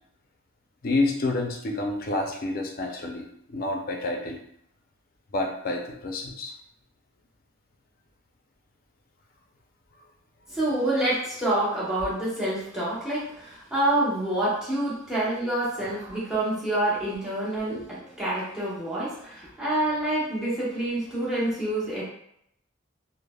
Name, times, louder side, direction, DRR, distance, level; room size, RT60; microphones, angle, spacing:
voice 1, 0.8-4.4 5.3-6.5 17.7-17.8, left 2 dB, 45° left, 2 dB, 0.4 m, -29 dB
voice 2, 10.5-22.0, right 1 dB, 5° right, -8 dB, 0.9 m, -27 dB
3.2 x 2.0 x 2.2 m, 0.73 s
head